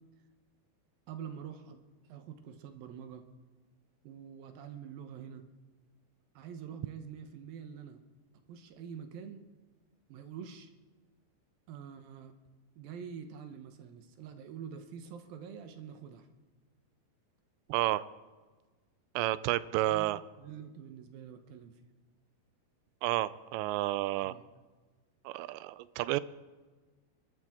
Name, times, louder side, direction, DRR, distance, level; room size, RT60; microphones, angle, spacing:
voice 1, 1.1-1.8 2.0-3.2 4.0-5.5 6.4-8.0 8.5-9.4 10.1-10.7 11.7-12.4 12.8-16.3 19.9-20.1 20.4-21.8 24.2-24.4, right 7 dB, 70° right, 7 dB, 2.4 m, -46 dB
voice 2, 17.7-18.0 19.2-20.2 23.0-24.3 25.3-26.2, right 16 dB, 85° right, 16 dB, 2.8 m, -31 dB
28.5 x 12.0 x 3.6 m, 1.3 s
omnidirectional pair, 5.0 m